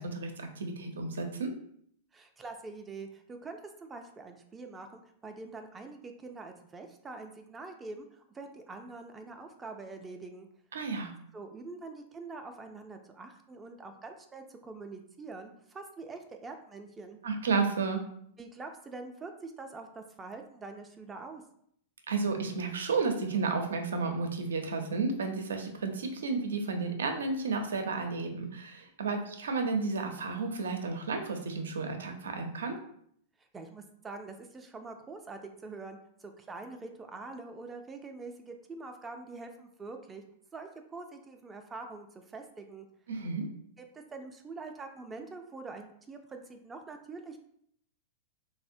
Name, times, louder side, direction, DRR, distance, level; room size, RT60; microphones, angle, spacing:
voice 1, 0.0-1.5 10.7-11.1 17.2-18.0 22.1-32.7 43.1-43.5, right 4 dB, 85° right, 5 dB, 0.5 m, -32 dB
voice 2, 2.1-10.5 11.3-17.2 18.4-21.4 33.5-40.2 40.5-42.9 43.8-47.4, right 3 dB, 15° right, 5 dB, 0.3 m, -45 dB
3.4 x 2.0 x 2.6 m, 0.68 s
hypercardioid pair, 115°, 0 cm